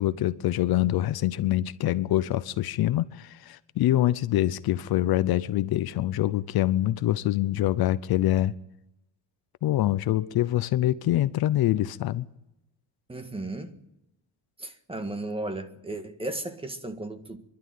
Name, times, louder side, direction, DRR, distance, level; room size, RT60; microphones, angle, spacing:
voice 1, 0.0-8.5 9.6-12.2, left 14 dB, 60° left, 0.8 m, -25 dB
voice 2, 13.1-13.7 14.6-17.4, right 2 dB, 15° right, 1.7 m, -35 dB
28.0 x 12.0 x 9.3 m
cardioid pair, 120°, 42 cm